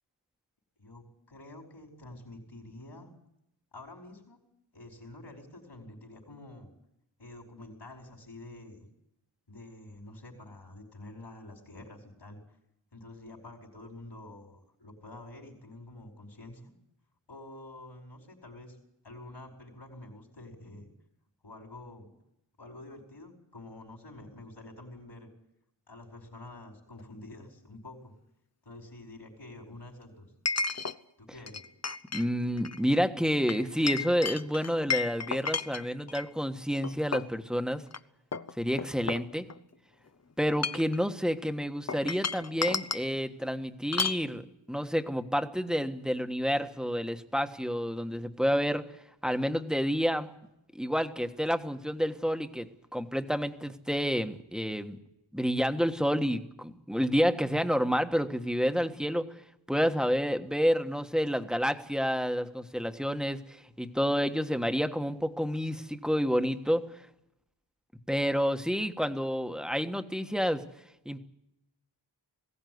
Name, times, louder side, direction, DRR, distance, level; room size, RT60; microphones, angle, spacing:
voice 1, 0.8-3.1 3.7-4.4 4.7-6.7 7.2-8.9 9.5-12.4 12.9-16.7 17.3-18.8 19.0-20.9 21.4-22.1 22.6-25.3 25.9-28.1 28.6-30.3 31.2-31.7, left 2 dB, 70° left, 1 dB, 5.0 m, -48 dB
Chink clink, 27.0-27.1 30.5-31.0 31.5-32.3 32.6-32.8 33.5-36.3 36.8-37.4 37.9-38.0 38.3-39.7 40.4-41.0 41.9-43.1 43.9-44.2, left 5 dB, 35° left, 0.8 m, -33 dB
voice 2, 32.1-37.8 38.6-39.4 40.4-44.4 44.7-48.8 49.2-50.3 50.7-55.0 55.3-59.3 59.7-66.8 68.1-70.6 71.0-71.2, equal, ahead, 7 dB, 1.4 m, -29 dB
20.5 x 16.5 x 9.5 m, 0.83 s
wide cardioid pair, 75°, 44 cm